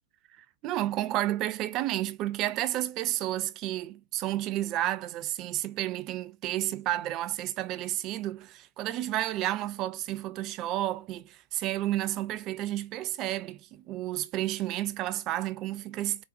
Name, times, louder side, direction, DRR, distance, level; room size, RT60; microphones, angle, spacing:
voice 1, 0.6-16.2, right 14 dB, 40° right, 0.4 m, -31 dB
4.0 x 2.0 x 2.5 m
hypercardioid pair, 105°, 0 cm